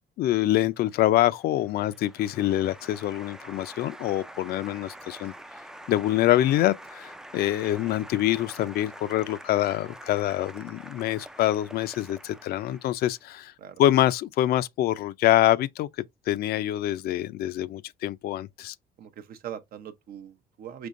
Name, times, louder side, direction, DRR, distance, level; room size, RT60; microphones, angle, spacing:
voice 1, 0.2-5.3 5.9-13.5 13.8-15.9 16.3-18.7, left 13 dB, 65° left, 0.4 m, -25 dB
Applause, 0.8-13.3, right 1 dB, 5° right, 0.3 m, -46 dB
voice 2, 19.0-20.9, right 9 dB, 60° right, 0.7 m, -41 dB
5.3 x 3.1 x 2.5 m
cardioid pair, 110°, 17 cm